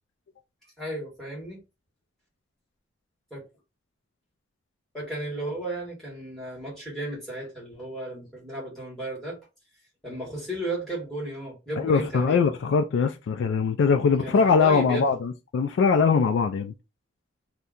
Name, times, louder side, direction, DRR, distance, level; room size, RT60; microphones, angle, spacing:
voice 1, 0.8-1.6 3.3-3.4 4.9-9.4 10.0-12.5 14.1-15.0, right 1 dB, ahead, 1.4 m, -34 dB
voice 2, 11.8-16.7, left 5 dB, 75° left, 0.3 m, -22 dB
2.7 x 2.2 x 3.7 m
head